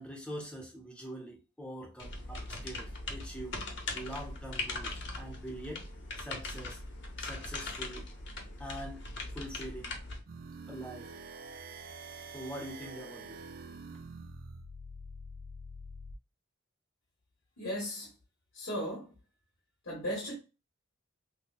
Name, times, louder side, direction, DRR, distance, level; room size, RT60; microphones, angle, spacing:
voice 1, 0.0-3.6 3.9-5.8 6.2-6.8 7.2-8.1 8.6-9.1 9.3-9.9 10.7-11.1 12.3-13.4, equal, 5° left, 0.8 m, -44 dB
sound 1, 2.0-10.2, left 2 dB, 55° left, 0.9 m, -40 dB
sound 2, 10.3-16.2, right 2 dB, 45° right, 0.3 m, -46 dB
voice 2, 17.6-18.1 18.5-19.1 19.8-20.4, equal, 75° left, 1.2 m, -36 dB
5.8 x 2.2 x 2.3 m
head